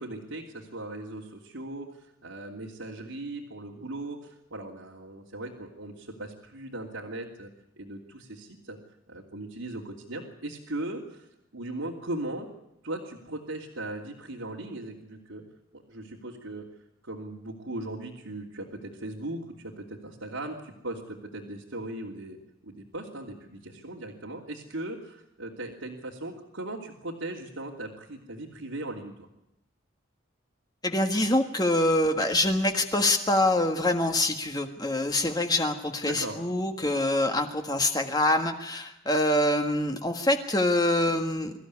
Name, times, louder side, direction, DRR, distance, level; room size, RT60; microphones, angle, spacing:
voice 1, 0.0-7.5 7.8-8.8 9.1-11.2 11.5-12.5 12.8-15.4 15.7-16.6 17.0-22.4 22.6-29.3 36.1-36.4, right 2 dB, 90° right, -3 dB, 3.2 m, -38 dB
voice 2, 30.8-41.5, left 1 dB, 20° left, 5 dB, 1.6 m, -25 dB
24.5 x 14.5 x 9.8 m, 0.83 s
head